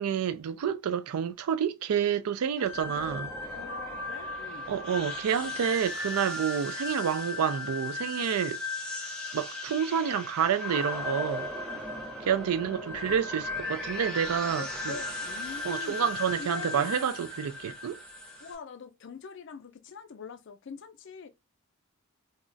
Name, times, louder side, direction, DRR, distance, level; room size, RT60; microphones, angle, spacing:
voice 1, 0.0-3.3 4.7-8.6 9.3-11.7 12.2-14.9 15.6-18.0, right 8 dB, 80° right, 0.4 m, -29 dB
sound 1, 2.6-18.5, left 2 dB, 5° left, 0.6 m, -36 dB
voice 2, 3.5-4.7 12.4-13.2 14.5-17.0 18.4-21.3, left 5 dB, 55° left, 0.4 m, -44 dB
sound 2, 3.7-8.9, right 1 dB, 30° right, 0.9 m, -46 dB
2.3 x 2.1 x 3.7 m
head